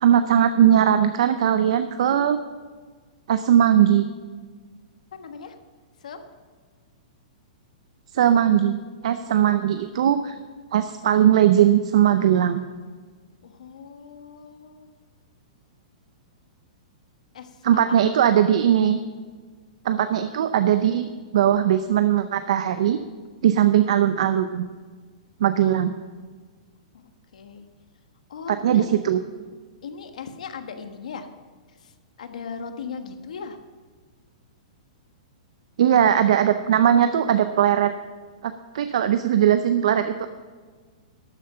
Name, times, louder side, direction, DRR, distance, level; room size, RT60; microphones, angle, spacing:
voice 1, 0.0-2.4 3.3-4.1 8.1-8.8 9.0-10.3 10.7-12.6 17.6-19.0 19.8-21.1 21.3-23.0 23.4-24.7 25.4-25.9 28.5-29.2 35.8-37.9 38.4-40.3, right 10 dB, 60° right, 10 dB, 0.6 m, -19 dB
voice 2, 5.1-5.6 6.0-6.2 9.3-9.5 13.4-14.9 17.3-18.1 27.3-27.7 28.3-28.9 29.8-31.3 31.8-31.9 32.2-33.6, left 6 dB, 80° left, 7 dB, 1.4 m, -38 dB
12.5 x 8.9 x 5.6 m, 1.5 s
hypercardioid pair, 170°, 4 cm